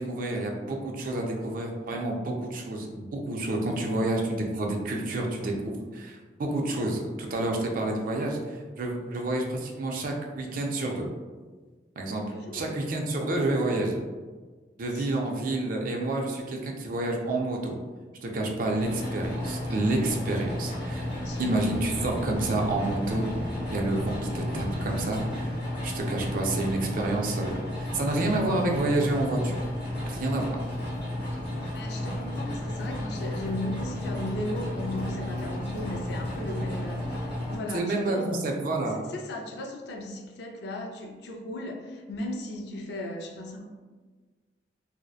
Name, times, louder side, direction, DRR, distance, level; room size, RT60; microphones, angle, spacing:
voice 1, 0.0-11.1 12.0-12.2 12.5-14.0 14.8-17.8 18.2-21.1 21.4-29.6 30.0-30.6 37.7-39.0, right 2 dB, 50° right, 1 dB, 0.4 m, -29 dB
voice 2, 12.3-12.8 14.9-15.1 21.2-21.8 31.7-38.3 38.8-43.7, left 1 dB, 65° left, 2 dB, 0.4 m, -36 dB
sound 1, 18.8-37.6, left 1 dB, 30° left, 0.9 m, -33 dB
2.6 x 2.0 x 2.3 m, 1.4 s
head